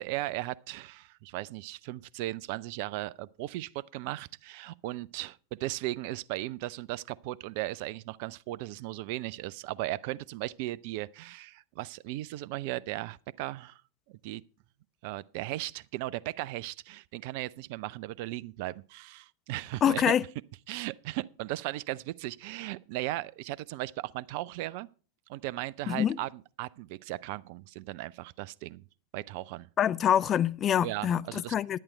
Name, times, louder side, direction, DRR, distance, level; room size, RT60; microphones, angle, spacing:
voice 1, 0.0-13.8 14.1-14.4 15.0-20.1 20.7-24.9 25.3-28.8 29.1-29.7 30.8-31.8, right 16 dB, 45° right, 0.4 m, -37 dB
voice 2, 19.8-20.2 25.9-26.2 29.8-31.8, left 9 dB, 25° left, 0.5 m, -25 dB
10.5 x 10.0 x 4.4 m
figure-of-eight pair, 90°, 0 cm